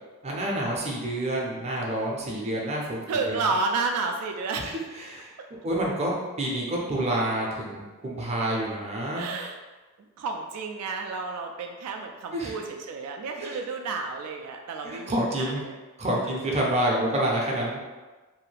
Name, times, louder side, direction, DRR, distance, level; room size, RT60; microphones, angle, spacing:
voice 1, 0.2-3.0 4.6-5.3 5.6-9.3 12.3-12.5 13.4-13.6 14.8-15.6 16.0-17.8, right 1 dB, 30° right, -3 dB, 0.5 m, -28 dB
voice 2, 3.1-4.8 9.1-9.6 10.2-15.8 16.2-16.5, right 4 dB, 90° right, 3 dB, 0.3 m, -31 dB
2.6 x 2.4 x 3.2 m, 1.2 s
head